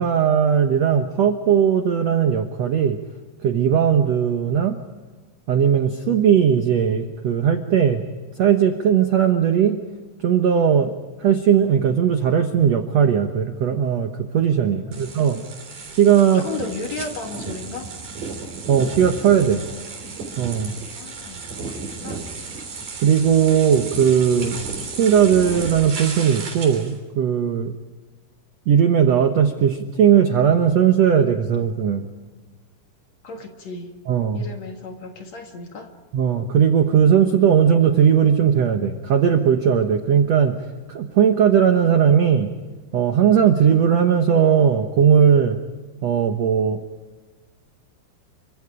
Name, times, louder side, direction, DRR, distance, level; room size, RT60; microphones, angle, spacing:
voice 1, 0.0-3.0 3.4-4.8 5.5-8.0 8.4-9.8 10.2-15.4 15.9-16.5 18.7-19.6 20.4-20.7 23.0-27.7 28.7-32.1 34.1-34.4 36.1-40.6 40.9-42.5 42.9-45.6 46.0-46.8, right 8 dB, 75° right, 6 dB, 1.5 m, -18 dB
voice 2, 14.7-15.4 16.3-17.9 20.9-22.3 33.2-33.9 34.3-35.9, left 4 dB, 50° left, 4 dB, 2.4 m, -35 dB
sound 1, 14.9-26.9, right 4 dB, 55° right, 5.1 m, -34 dB
29.5 x 24.5 x 5.1 m, 1.3 s
omnidirectional pair, 4.7 m